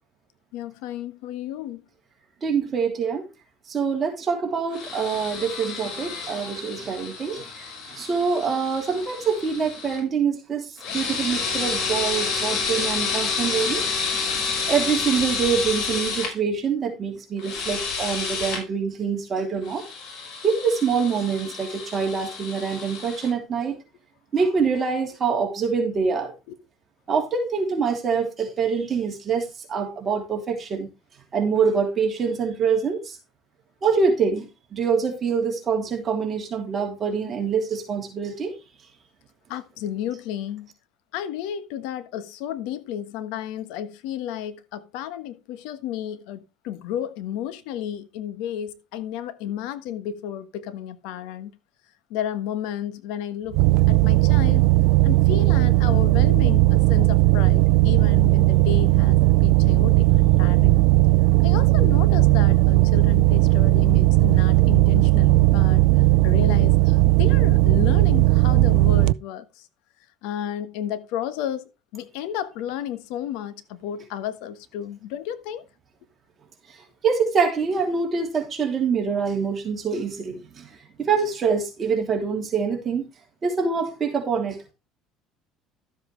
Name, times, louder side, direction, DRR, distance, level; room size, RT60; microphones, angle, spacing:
voice 1, 0.5-1.8 39.5-40.7 41.1-51.5 52.1-54.7 55.0-60.8 61.4-65.8 66.2-69.7 70.2-75.6, left 10 dB, 80° left, 1.3 m, -32 dB
voice 2, 2.4-3.2 3.7-13.8 14.7-19.8 20.4-23.8 24.3-26.3 27.1-30.9 31.3-33.2 33.8-38.5 76.7-76.8 77.0-83.1 83.4-84.7, right 5 dB, 30° right, 3.1 m, -25 dB
sound 1, 4.7-10.0 10.8-16.3 17.4-18.6 19.6-23.3, left 5 dB, 60° left, 5.5 m, -29 dB
sound 2, 53.5-69.1, right 20 dB, 80° right, 0.4 m, -17 dB
13.0 x 7.8 x 3.3 m
cardioid pair, 125°, 0 cm